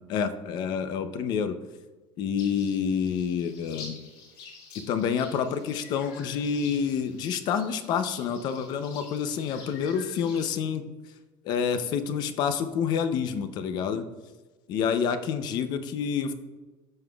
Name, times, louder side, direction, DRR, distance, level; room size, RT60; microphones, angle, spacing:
voice 1, 0.0-1.5 2.2-4.0 4.9-10.8 11.4-14.0 14.7-16.3, left 7 dB, 40° left, 10 dB, 0.6 m, -28 dB
sound 1, 2.4-10.5, left 4 dB, 85° left, 2.1 m, -48 dB
13.0 x 5.6 x 2.3 m, 1.3 s
cardioid pair, 170°, 11 cm